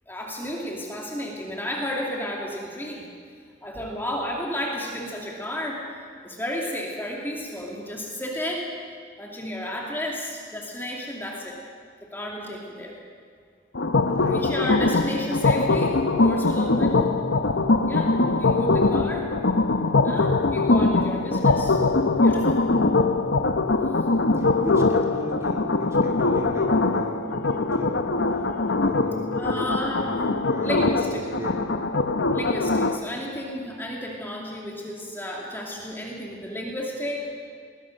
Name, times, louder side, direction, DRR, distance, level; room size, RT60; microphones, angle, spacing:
voice 1, 0.1-3.1 3.6-5.8 6.2-8.7 9.2-11.6 12.1-12.9 14.2-17.1 17.9-19.3 20.0-21.8 22.2-22.6 29.3-30.1 30.6-31.3 32.3-37.3, equal, 10° left, -1 dB, 2.5 m, -32 dB
sound 1, 13.7-33.0, left 3 dB, 80° left, 1.0 m, -22 dB
voice 2, 24.1-28.0 28.8-29.7 29.9-31.0 31.4-31.7, equal, 15° right, 0 dB, 2.6 m, -35 dB
21.5 x 19.5 x 6.5 m, 2.1 s
head